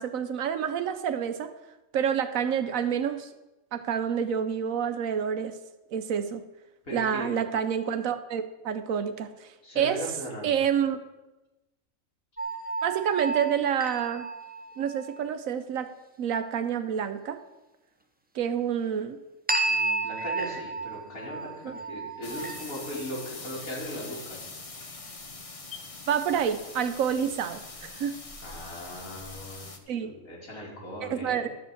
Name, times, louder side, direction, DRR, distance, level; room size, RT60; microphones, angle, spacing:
voice 1, 0.0-1.5 1.9-3.3 3.7-5.5 5.9-6.4 6.9-10.0 10.4-11.0 12.8-14.3 14.8-15.9 16.2-17.4 18.3-19.2 21.6-21.8 26.1-28.2 29.9-30.1 31.0-31.5, right 8 dB, 75° right, 9 dB, 1.1 m, -28 dB
voice 2, 6.8-7.4 9.6-10.5 19.6-24.4 28.4-31.5, equal, 90° left, -5 dB, 3.8 m, -38 dB
sound 1, 12.4-15.2 19.5-23.0, right 3 dB, 10° right, 0.6 m, -32 dB
sound 2, 22.2-29.8, left 3 dB, 30° left, 0.9 m, -43 dB
12.5 x 5.2 x 7.9 m, 1.0 s
omnidirectional pair, 1.4 m